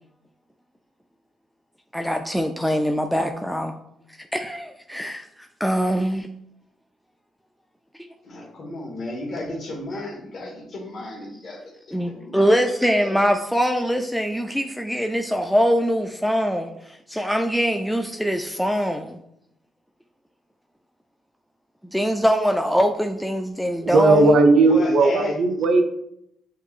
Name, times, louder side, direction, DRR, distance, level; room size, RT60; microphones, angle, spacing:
voice 1, 1.9-3.7 4.3-6.3 11.9-19.2 21.9-24.3, equal, ahead, 4 dB, 0.3 m, -23 dB
voice 2, 8.2-12.6 13.0-13.2 24.6-25.3, left 2 dB, 55° left, -1 dB, 1.4 m, -34 dB
voice 3, 23.8-25.8, right 3 dB, 70° right, 6 dB, 0.6 m, -16 dB
5.7 x 3.0 x 2.4 m, 0.77 s
cardioid pair, 90°, 0 cm